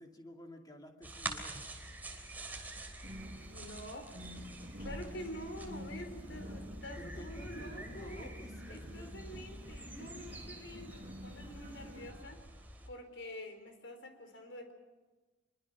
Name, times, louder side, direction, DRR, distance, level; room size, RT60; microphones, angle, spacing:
voice 1, 0.0-1.6 7.0-9.1, equal, 20° left, 3 dB, 2.5 m, -52 dB
sound 1, 1.0-12.9, right 1 dB, 10° right, 3.3 m, -47 dB
sound 2, 3.0-12.1, equal, 35° right, 5.6 m, -49 dB
voice 2, 3.5-4.1 4.8-8.3 8.7-12.4 12.9-14.7, equal, 75° left, 6 dB, 4.2 m, -47 dB
25.5 x 23.0 x 6.2 m, 1.2 s
head